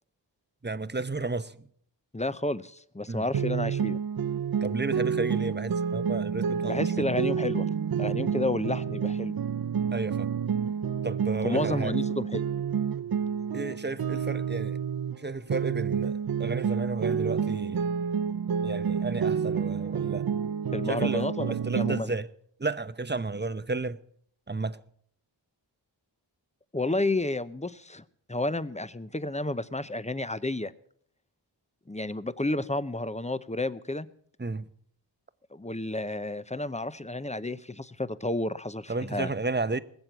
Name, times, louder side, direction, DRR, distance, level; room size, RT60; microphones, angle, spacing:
voice 1, 0.6-1.7 3.1-3.3 4.6-7.0 9.9-10.3 11.0-11.9 13.5-14.8 15.2-17.9 18.6-20.3 20.9-22.3 22.6-24.0 24.5-24.8 34.4-34.7 38.9-39.8, right 3 dB, 25° right, 0.8 m, -32 dB
voice 2, 2.1-4.0 6.6-7.7 8.0-9.3 11.4-12.4 19.9-20.1 20.7-22.1 26.7-28.0 28.3-30.7 31.9-34.1 35.5-39.3, left 2 dB, 15° left, 0.8 m, -31 dB
sound 1, 3.3-15.2 15.5-22.0, right 7 dB, 55° right, 0.6 m, -29 dB
20.5 x 7.5 x 8.1 m
wide cardioid pair, 55°, 45 cm